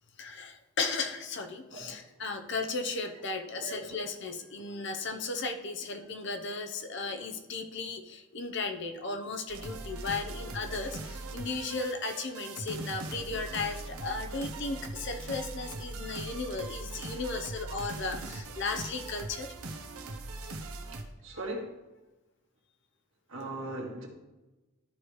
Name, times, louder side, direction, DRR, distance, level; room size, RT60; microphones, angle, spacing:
voice 1, 0.2-19.5 21.3-21.4, left 3 dB, 55° left, 5 dB, 0.8 m, -35 dB
voice 2, 3.6-4.0 21.2-21.7 23.3-24.1, right 2 dB, 65° right, -1 dB, 1.8 m, -38 dB
sound 1, 9.5-21.0, right 2 dB, 85° right, 1.0 m, -40 dB
13.0 x 5.0 x 3.2 m, 1.1 s
head